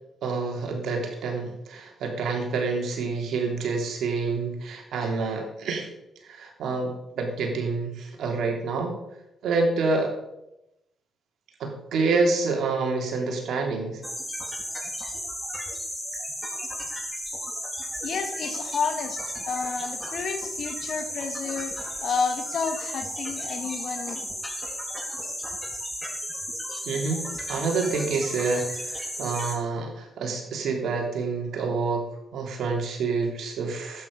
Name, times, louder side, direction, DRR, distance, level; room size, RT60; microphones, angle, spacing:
voice 1, 0.2-5.9 6.2-9.0 9.4-10.1 11.6-14.0 26.8-32.0 32.3-34.1, right 4 dB, 70° right, 2 dB, 3.3 m, -27 dB
sound 1, 14.0-29.6, equal, 5° left, 3.9 m, -34 dB
voice 2, 18.0-24.2, left 5 dB, 65° left, 7 dB, 1.9 m, -31 dB
12.0 x 9.4 x 5.4 m, 0.87 s
supercardioid pair, 60°, 0 cm